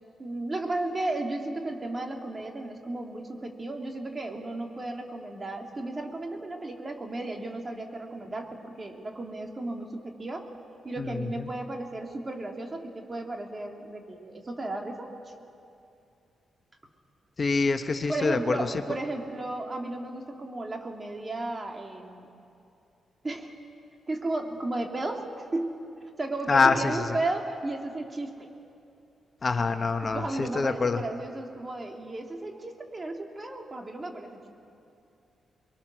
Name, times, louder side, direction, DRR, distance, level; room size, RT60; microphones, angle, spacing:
voice 1, 0.2-10.5 10.8-15.1 18.1-22.3 23.2-23.5 24.1-25.8 26.2-28.5 30.0-34.5, right 2 dB, 35° right, 2 dB, 2.9 m, -34 dB
voice 2, 17.4-18.7 26.5-26.9 29.4-31.0, left 4 dB, 45° left, 7 dB, 1.2 m, -25 dB
24.0 x 22.5 x 6.3 m, 2.6 s
supercardioid pair, 50°, 0 cm